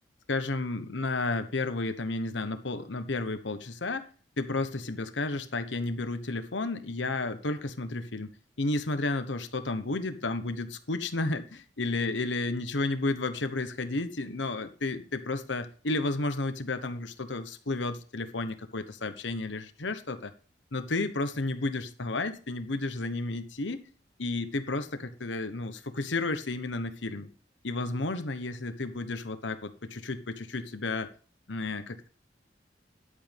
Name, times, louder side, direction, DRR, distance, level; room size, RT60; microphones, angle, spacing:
voice 1, 0.3-4.1 4.4-8.3 8.6-20.3 20.7-23.8 24.2-27.3 27.6-31.1 31.5-32.1, left 2 dB, 80° left, 1.2 m, -32 dB
11.5 x 8.2 x 3.5 m
head